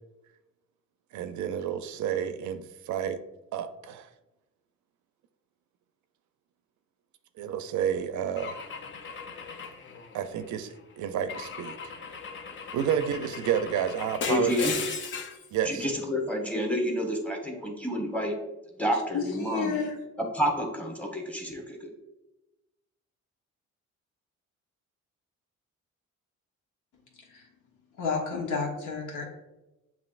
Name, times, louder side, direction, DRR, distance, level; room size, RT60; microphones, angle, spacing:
voice 1, 1.1-3.2 3.5-4.1 7.4-8.6 10.1-11.8 12.7-14.7 15.5-15.8, right 9 dB, 75° right, 10 dB, 0.5 m, -30 dB
Car / Engine / Glass, 8.4-10.6 11.3-15.5, left 5 dB, 40° left, 0.5 m, -37 dB
voice 2, 14.3-14.7 15.6-18.3 18.8-19.8 20.2-21.9, equal, 5° left, 1 dB, 1.1 m, -29 dB
voice 3, 19.1-20.0 27.3-27.5 28.0-29.2, left 5 dB, 80° left, 0 dB, 1.2 m, -31 dB
7.1 x 2.9 x 2.4 m, 1.0 s
cardioid pair, 90°, 30 cm